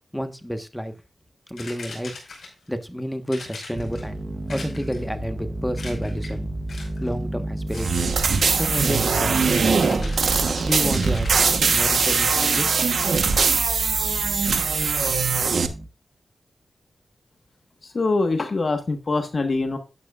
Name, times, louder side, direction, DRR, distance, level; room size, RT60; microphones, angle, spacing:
voice 1, 0.1-0.9 1.5-2.2 2.7-4.2 4.5-6.5 7.0-8.1 8.5-10.2 10.6-12.7, equal, 5° left, 8 dB, 1.3 m, -30 dB
sound 1, 1.6-2.7 3.3-4.1 4.5-5.1 5.7-6.4 6.7-7.1 7.7-8.0 8.3-12.6, left 3 dB, 75° left, 5.0 m, -41 dB
sound 2, 3.7-15.9, right 2 dB, 40° right, 1.2 m, -32 dB
sound 3, 7.7-15.7, right 5 dB, 75° right, 1.1 m, -21 dB
voice 2, 17.8-19.8, left 3 dB, 50° left, 6 dB, 1.4 m, -24 dB
12.0 x 9.2 x 2.5 m, 0.28 s
wide cardioid pair, 85°, 0 cm